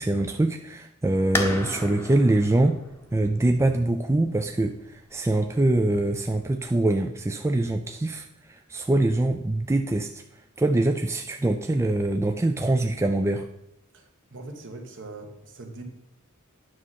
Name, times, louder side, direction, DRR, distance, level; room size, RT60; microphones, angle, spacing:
voice 1, 0.0-2.8 3.1-10.2 10.6-13.5, right 2 dB, 15° right, 5 dB, 0.4 m, -24 dB
sound 1, 1.3-6.8, left 2 dB, 10° left, 0.8 m, -35 dB
voice 2, 13.9-15.8, right 2 dB, 60° right, 3 dB, 1.4 m, -41 dB
9.6 x 6.3 x 4.2 m, 0.85 s
head